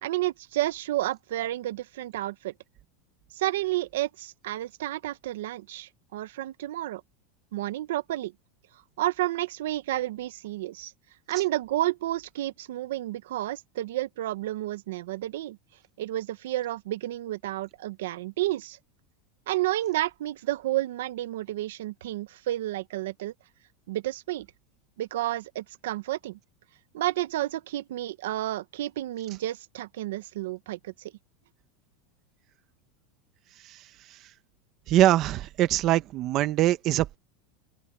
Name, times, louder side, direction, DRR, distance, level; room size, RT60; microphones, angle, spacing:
voice 1, 0.0-2.5 3.3-7.0 7.5-8.3 9.0-10.9 11.3-15.6 16.0-18.8 19.5-23.3 23.9-24.5 25.0-26.4 26.9-31.1, right 15 dB, 85° right, 0.9 m, -31 dB
voice 2, 34.9-37.2, right 14 dB, 35° right, 1.1 m, -23 dB
open air
supercardioid pair, 165°, 0 cm